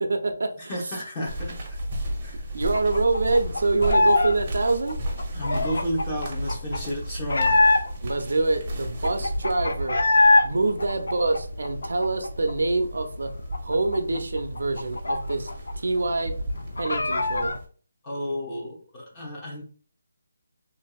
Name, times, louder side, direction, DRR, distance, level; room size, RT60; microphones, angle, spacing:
voice 1, 0.0-0.7 2.5-4.9 8.0-10.0 10.4-13.3 13.6-15.5 15.8-16.3 16.8-17.6, right 3 dB, 75° right, 6 dB, 0.5 m, -25 dB
voice 2, 0.7-1.5 2.2-2.4 5.3-7.6 18.0-19.6, equal, 20° left, -4 dB, 0.8 m, -32 dB
sound 1, 1.2-17.7, equal, 30° right, 0.6 m, -34 dB
sound 2, 2.7-4.4 4.6-8.1 8.6-8.7 8.8-10.5 10.8-12.5 12.8-12.9 13.2-15.7 16.0-16.1 16.4-17.6, left 2 dB, 75° left, 0.4 m, -23 dB
2.9 x 2.6 x 2.3 m, 0.43 s
hypercardioid pair, 170°, 0 cm